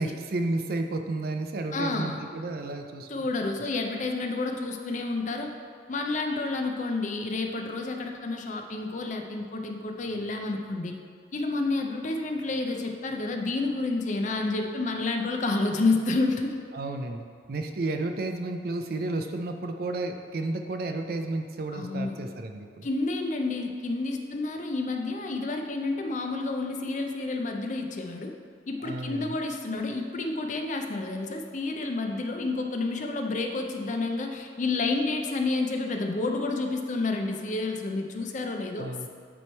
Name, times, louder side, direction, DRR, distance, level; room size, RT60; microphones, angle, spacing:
voice 1, 0.0-3.3 16.7-22.9 28.8-29.4 38.8-39.1, right 2 dB, 55° right, 6 dB, 0.4 m, -32 dB
voice 2, 1.7-2.2 3.1-5.5 5.9-11.0 11.3-16.6 21.7-22.2 22.8-28.3 28.7-38.9, left 3 dB, 45° left, 4 dB, 0.5 m, -29 dB
8.9 x 3.1 x 4.4 m, 2.2 s
head